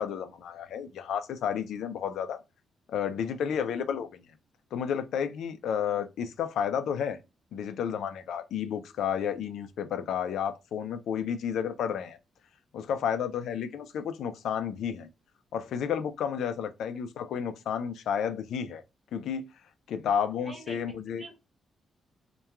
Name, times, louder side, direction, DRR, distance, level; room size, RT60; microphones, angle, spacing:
voice 1, 0.0-2.4 2.9-4.2 4.7-7.2 7.5-12.2 12.7-15.1 15.5-18.8 19.1-19.4 19.9-21.2, left 8 dB, 90° left, 0.3 m, -31 dB
voice 2, 20.4-21.4, right 1 dB, 15° right, 0.5 m, -46 dB
2.9 x 2.2 x 2.2 m
wide cardioid pair, 165°, 0 cm